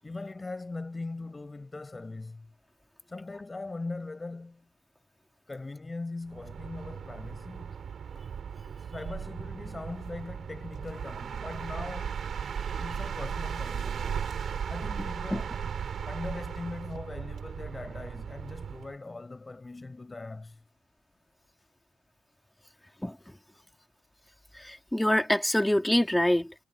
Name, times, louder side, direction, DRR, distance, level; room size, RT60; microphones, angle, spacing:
voice 1, 0.0-2.5 3.1-4.6 5.5-7.8 8.1-8.2 8.8-12.2 12.8-14.1 14.7-15.5 16.0-20.6, left 3 dB, 20° left, 6.6 m, -40 dB
sound 1, 6.3-19.0, right 7 dB, 55° right, 3.3 m, -36 dB
voice 2, 15.0-15.4 23.0-23.2 24.5-26.5, left 1 dB, 5° left, 3.1 m, -26 dB
cardioid pair, 90°, 0 cm